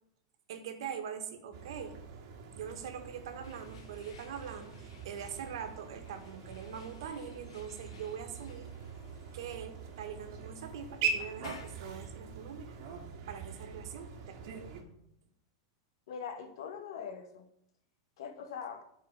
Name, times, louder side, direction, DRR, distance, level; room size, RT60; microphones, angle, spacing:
voice 1, 0.5-1.9 2.5-8.7 9.3-12.8 13.3-14.6, right 7 dB, 65° right, 1.5 m, -43 dB
sound 1, 1.5-14.8, right 5 dB, 45° right, 1.7 m, -42 dB
sound 2, 3.4-13.1, left 6 dB, 85° left, 1.5 m, -58 dB
voice 2, 16.1-17.5 18.2-18.8, left 7 dB, 65° left, 1.3 m, -42 dB
10.5 x 4.8 x 5.9 m
supercardioid pair, 165°, 3 cm